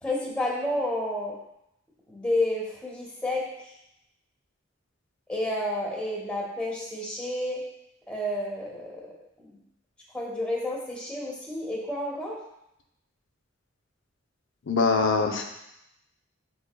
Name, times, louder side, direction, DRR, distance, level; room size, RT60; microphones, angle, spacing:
voice 1, 0.0-1.3 2.1-3.5 5.3-7.6 8.1-9.6 10.1-12.4, left 1 dB, 5° left, -4 dB, 0.9 m, -30 dB
voice 2, 14.7-15.4, left 4 dB, 65° left, 3 dB, 0.6 m, -23 dB
7.8 x 3.0 x 2.2 m, 0.83 s
head